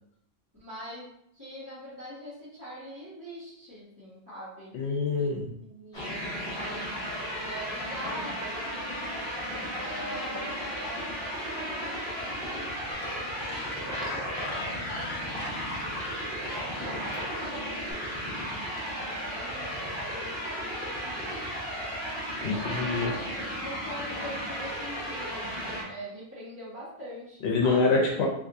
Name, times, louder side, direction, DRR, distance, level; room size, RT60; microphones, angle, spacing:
voice 1, 0.6-1.1 1.3-4.7 5.2-5.3 5.6-9.3 9.7-14.3 14.6-17.4 17.7-21.6 22.4-27.8, equal, 15° right, -15 dB, 1.3 m, -44 dB
voice 2, 4.7-5.5 22.4-23.1 27.4-28.3, left 3 dB, 85° left, -1 dB, 0.9 m, -25 dB
sound 1, 5.9-25.8, equal, 40° left, 1.5 m, -34 dB
Gull seagull, 12.9-17.9, left 2 dB, 55° left, 0.7 m, -41 dB
3.4 x 2.7 x 2.6 m, 0.77 s
omnidirectional pair, 1.1 m